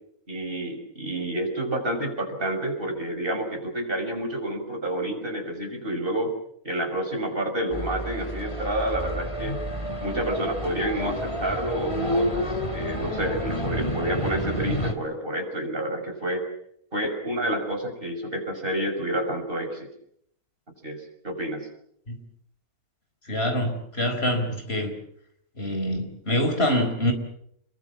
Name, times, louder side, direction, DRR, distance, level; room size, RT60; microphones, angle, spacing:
voice 1, 0.3-6.3 6.6-9.6 10.0-16.4 16.9-19.9 20.8-21.0 21.2-21.7, right 1 dB, 35° right, 3 dB, 6.3 m, -29 dB
sound 1, 7.7-14.9, equal, 20° left, 3.1 m, -30 dB
voice 2, 23.3-24.9 25.6-27.1, equal, 40° left, 6 dB, 4.8 m, -25 dB
29.0 x 22.5 x 7.3 m, 0.71 s
omnidirectional pair, 1.6 m